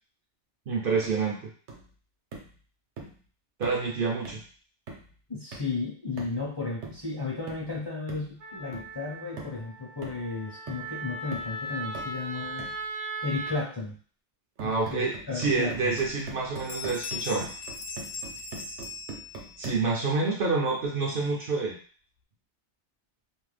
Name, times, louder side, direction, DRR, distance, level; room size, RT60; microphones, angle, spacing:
voice 1, 0.7-1.5 3.6-4.4 14.6-17.5 19.6-21.8, right 4 dB, 60° right, -1 dB, 0.6 m, -28 dB
sound 1, 1.0-1.2 1.7-1.9 2.3-2.6 3.0-3.2 3.6-3.9 4.2-4.5 4.9-5.1 5.5-5.8 6.2-6.5 6.8-7.1 7.5-7.7 8.1-8.3 8.7-9.0 9.4-9.6 10.0-10.4 10.7-10.9 11.3-11.6 11.9-12.2 12.6-12.8 14.6-19.9, right 3 dB, 75° right, 1.0 m, -43 dB
voice 2, 5.3-12.7 13.2-14.0 14.6-15.9, left 4 dB, 30° left, -5 dB, 0.6 m, -34 dB
Wind instrument woodwind instrument, 8.4-13.6, right 2 dB, 30° right, 0.3 m, -38 dB
Bell, 16.1-16.3 16.6-19.7, left 5 dB, 85° left, 0.9 m, -39 dB
2.5 x 2.1 x 3.2 m, 0.43 s
omnidirectional pair, 1.2 m